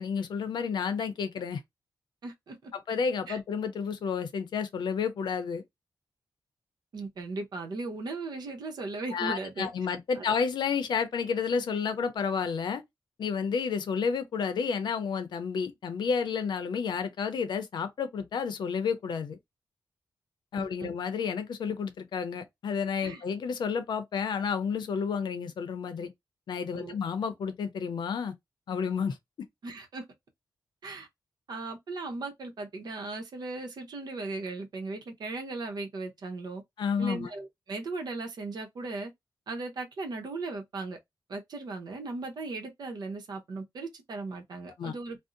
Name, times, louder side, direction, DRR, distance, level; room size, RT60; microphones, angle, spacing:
voice 1, 0.0-1.6 2.7-5.6 9.1-12.8 13.2-19.4 20.5-26.1 26.5-28.3 28.7-29.5 36.8-37.3 44.8-44.9, left 6 dB, 75° left, 0.6 m, -31 dB
voice 2, 2.2-2.7 3.3-3.4 6.9-10.3 20.6-20.9 23.0-23.2 26.7-26.9 29.6-30.0 30.8-31.1 31.5-36.6 37.0-39.1 39.5-41.0 41.3-45.2, right 3 dB, 65° right, 0.8 m, -37 dB
2.6 x 2.1 x 3.7 m
wide cardioid pair, 145°, 8 cm